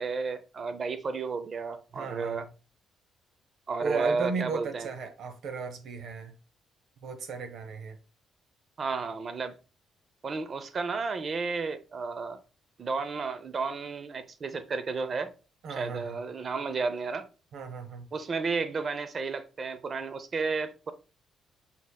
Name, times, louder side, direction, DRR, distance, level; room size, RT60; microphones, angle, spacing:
voice 1, 0.0-2.5 3.7-4.9 8.8-9.6 10.2-12.4 12.8-15.3 15.7-17.3 18.1-20.9, right 4 dB, 45° right, 0.6 m, -32 dB
voice 2, 1.9-2.5 3.8-6.3 7.0-8.0 15.6-16.2 17.5-18.1, right 5 dB, 75° right, 0.8 m, -35 dB
6.2 x 3.6 x 2.2 m
cardioid pair, 90°, 0 cm